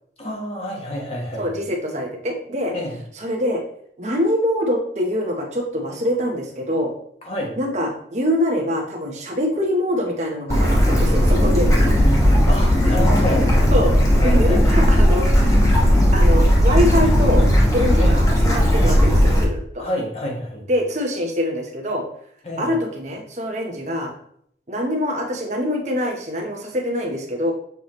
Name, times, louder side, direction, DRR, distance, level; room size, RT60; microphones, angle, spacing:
voice 1, 0.2-1.5 2.7-3.0 7.2-7.6 12.5-14.9 18.0-18.2 19.8-20.7 22.4-22.7, left 1 dB, 35° left, -1 dB, 1.4 m, -28 dB
voice 2, 1.4-2.7 3.1-3.6 4.0-6.9 7.6-12.0 12.9-13.1 13.7-13.9 14.2-15.6 15.9-17.4 17.7-19.9 20.7-22.0 22.6-24.1 24.7-27.5, equal, 40° right, 1 dB, 1.0 m, -24 dB
Bird / Stream, 10.5-19.4, equal, 20° left, 1.3 m, -16 dB
6.7 x 4.6 x 3.1 m, 0.66 s
head